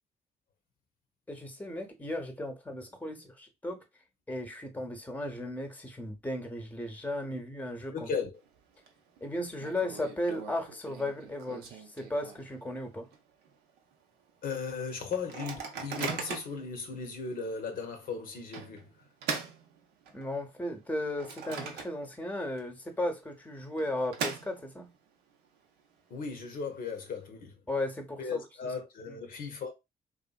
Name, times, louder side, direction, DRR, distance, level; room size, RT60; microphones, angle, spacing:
voice 1, 1.3-3.8 4.3-8.1 9.2-13.1 20.1-24.9 27.7-28.7 29.1-29.2, left 1 dB, 10° left, 0.8 m, -35 dB
voice 2, 7.9-8.4 14.4-19.0 26.1-27.6 28.2-29.7, left 5 dB, 55° left, 0.7 m, -37 dB
Microwave oven, 8.4-8.9 9.2-9.3 9.6-12.7 13.1-13.2 13.5-13.8 14.3-14.4 15.1-16.7 17.3-17.4 18.5-20.4 20.8-22.3 22.6-22.7 23.5-25.0, right 5 dB, 75° right, 0.5 m, -40 dB
2.7 x 2.5 x 2.2 m
hypercardioid pair, 45°, 17 cm